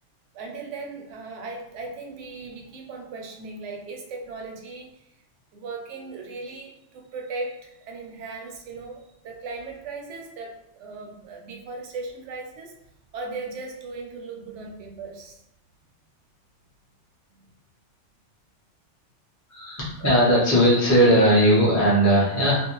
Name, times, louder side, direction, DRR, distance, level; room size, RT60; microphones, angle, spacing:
voice 1, 0.3-4.9 5.5-12.8 13.1-15.4 17.3-17.5, right 3 dB, 80° right, 1 dB, 0.9 m, -37 dB
voice 2, 19.5-22.6, equal, 20° left, -8 dB, 0.4 m, -18 dB
2.5 x 2.0 x 2.9 m, 0.78 s
omnidirectional pair, 1.2 m